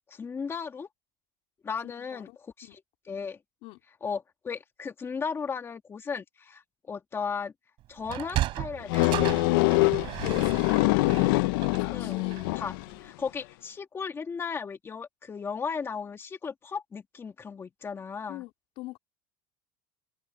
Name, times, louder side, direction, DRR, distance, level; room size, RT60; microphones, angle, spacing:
voice 1, 0.1-0.9 1.6-3.4 4.0-6.6 6.9-7.5 7.9-9.5 11.9-12.2 12.6-12.7 13.0-18.4, left 5 dB, 20° left, 1.7 m, -36 dB
voice 2, 1.8-2.4 2.6-2.8 3.6-3.8 10.2-10.9 11.2-12.5 18.3-19.0, left 19 dB, 55° left, 2.8 m, -42 dB
Sliding door, 8.0-12.6, right 15 dB, 50° right, 3.8 m, -35 dB
sound 1, 8.9-12.9, left 22 dB, 75° left, 0.8 m, -24 dB
supercardioid pair, 130°, 11 cm